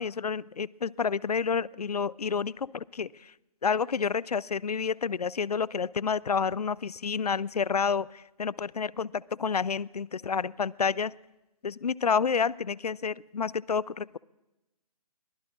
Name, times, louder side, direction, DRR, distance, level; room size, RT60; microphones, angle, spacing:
voice 1, 0.0-3.1 3.6-11.1 11.6-14.2, left 6 dB, 85° left, 23 dB, 0.5 m, -29 dB
22.5 x 20.5 x 2.5 m, 1.0 s
figure-of-eight pair, 145°, 19 cm